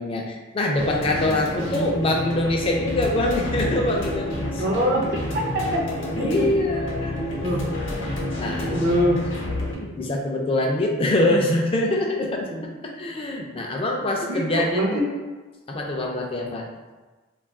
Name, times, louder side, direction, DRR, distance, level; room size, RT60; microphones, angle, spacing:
voice 1, 0.0-4.6 6.2-7.2 8.4-8.7 9.8-12.5 12.8-15.0 15.7-16.7, left 1 dB, 25° left, 0 dB, 0.3 m, -24 dB
sound 1, 0.8-9.8, left 1 dB, 65° left, 0.7 m, -29 dB
voice 2, 4.6-6.5 7.4-7.6 8.7-9.2 12.5-12.7 14.3-15.1, equal, 50° right, -2 dB, 0.4 m, -24 dB
2.3 x 2.2 x 3.5 m, 1.3 s
head